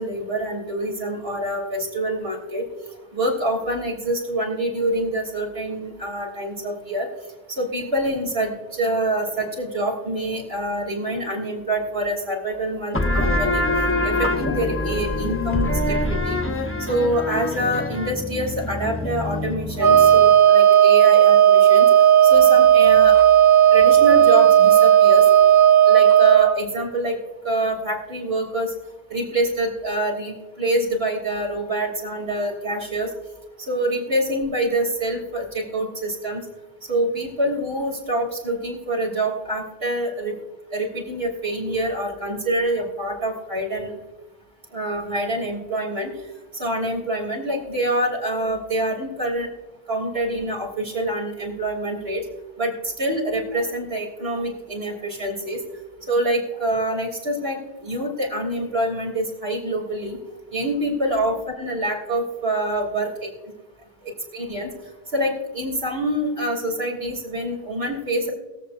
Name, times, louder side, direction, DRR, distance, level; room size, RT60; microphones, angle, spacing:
voice 1, 0.0-2.6 3.1-7.1 7.5-13.7 14.0-16.4 16.8-21.9 22.2-23.1 23.7-25.2 25.9-27.2 27.4-28.7 29.1-33.1 33.6-36.4 36.9-40.3 40.7-43.9 44.7-46.1 46.5-49.5 49.9-52.2 52.6-55.6 56.1-60.2 60.5-63.3 64.0-64.7 65.1-68.3, right 1 dB, 75° right, -2 dB, 3.5 m, -26 dB
sound 1, 12.9-20.2, left 1 dB, 15° left, 0.8 m, -25 dB
Wind instrument woodwind instrument, 19.8-26.5, right 10 dB, 55° right, 2.2 m, -13 dB
22.0 x 8.1 x 2.6 m, 1.2 s
omnidirectional pair, 1.0 m